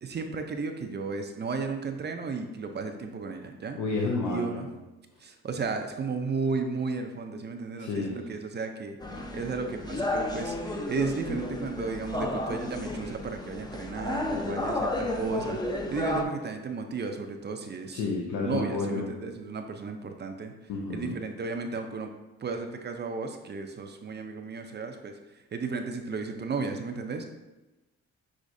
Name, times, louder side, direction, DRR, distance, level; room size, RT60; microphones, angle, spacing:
voice 1, 0.0-3.8 4.3-4.7 5.2-18.0 18.4-20.5 20.9-22.1 22.4-25.2 25.5-27.2, right 4 dB, 35° right, 5 dB, 0.5 m, -34 dB
voice 2, 3.8-4.6 7.8-8.2 17.9-19.1 20.7-21.1, left 3 dB, 85° left, -3 dB, 0.8 m, -30 dB
sound 1, 9.0-16.2, left 1 dB, 15° left, 0.6 m, -32 dB
6.4 x 3.1 x 2.6 m, 1.1 s
cardioid pair, 90°, 30 cm